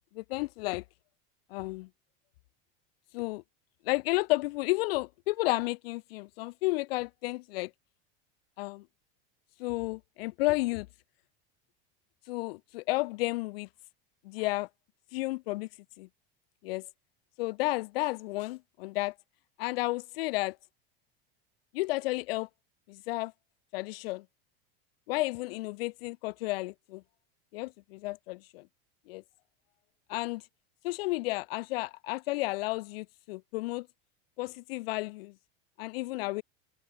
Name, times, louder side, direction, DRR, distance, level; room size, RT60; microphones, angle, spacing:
voice 1, 0.2-0.8 1.5-1.9 3.1-3.4 3.9-7.7 8.6-8.8 9.6-10.9 12.3-13.7 14.3-14.7 15.1-15.7 16.0-16.1 16.6-16.9 17.4-19.1 19.6-20.6 21.7-22.5 22.9-23.3 23.7-24.2 25.1-27.0 27.5-28.6 29.1-29.2 30.1-30.4 30.8-33.9 34.4-35.3 35.8-36.4, left 22 dB, 80° left, 0.5 m, -32 dB
open air
supercardioid pair, 170°, 29 cm